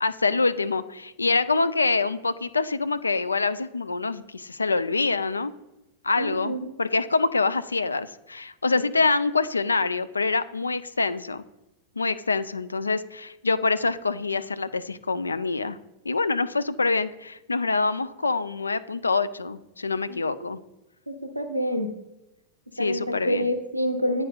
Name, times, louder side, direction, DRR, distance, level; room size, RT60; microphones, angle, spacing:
voice 1, 0.0-5.5 6.0-11.4 12.0-15.8 16.0-20.6 22.8-23.5, left 3 dB, 80° left, 14 dB, 0.3 m, -25 dB
voice 2, 6.2-6.7 20.1-20.3 21.1-21.9 22.8-24.3, equal, 90° right, 5 dB, 0.5 m, -27 dB
9.8 x 4.4 x 2.2 m, 0.95 s
figure-of-eight pair, 90°, 0 cm